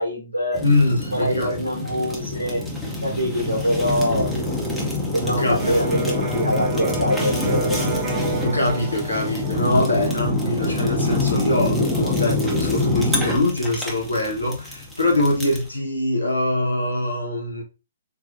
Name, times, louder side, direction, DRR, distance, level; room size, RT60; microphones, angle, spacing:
voice 1, 0.0-0.6 1.1-2.6 3.0-4.3 5.1-7.9, equal, 85° right, 1.0 m, -24 dB
Fire, 0.5-15.7, left 2 dB, ahead, 0.8 m, -25 dB
voice 2, 0.6-1.5 5.3-5.7 7.4-7.8 8.4-17.6, left 1 dB, 80° left, 1.2 m, -23 dB
Electric guitar, 5.6-13.4, right 4 dB, 30° right, 1.2 m, -33 dB
3.9 x 2.3 x 2.7 m
figure-of-eight pair, 125°, 0 cm